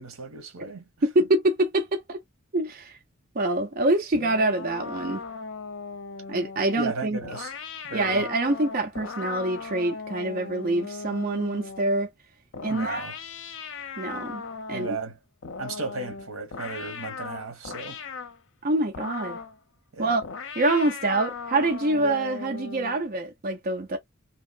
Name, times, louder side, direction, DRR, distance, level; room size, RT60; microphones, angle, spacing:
voice 1, 0.0-0.9 6.8-7.5 7.8-8.2 12.7-13.2 14.7-15.2 15.6-18.0 19.9-20.2 21.9-22.2, right 3 dB, 90° right, 1.0 m, -34 dB
voice 2, 1.0-2.2 2.5-2.9 3.3-5.2 6.3-7.2 7.9-12.1 12.6-13.0 14.0-14.4 14.7-15.0 18.6-19.4 20.0-20.2 20.6-24.0, right 2 dB, 45° right, 0.6 m, -25 dB
sound 1, 4.1-12.0 12.5-15.1 15.4-18.4 18.9-19.6 20.2-23.1, left 5 dB, 65° left, 0.6 m, -38 dB
2.9 x 2.1 x 2.4 m
head